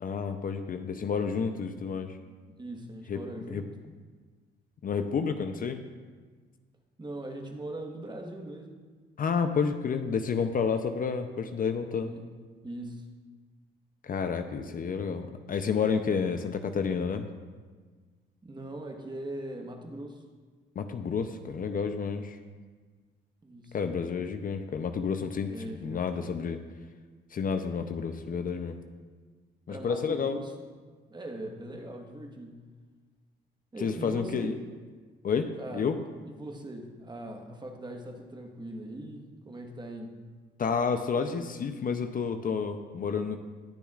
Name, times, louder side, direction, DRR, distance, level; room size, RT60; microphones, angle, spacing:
voice 1, 0.0-2.2 3.1-3.2 3.5-3.6 4.8-5.8 9.2-12.1 14.0-17.3 20.8-22.4 23.7-25.5 25.8-26.6 27.3-28.8 29.7-30.4 33.8-34.5 35.2-36.0 40.6-43.4, left 6 dB, 45° left, 7 dB, 0.6 m, -30 dB
voice 2, 2.6-3.7 7.0-8.8 12.0-12.3 12.6-13.1 14.8-15.3 18.4-20.2 23.4-23.8 25.5-26.1 29.7-30.5 31.1-32.6 33.7-34.5 35.6-35.9 36.2-40.1, right 1 dB, 20° right, 3 dB, 1.3 m, -41 dB
19.5 x 6.9 x 2.4 m, 1.5 s
cardioid pair, 90°, 20 cm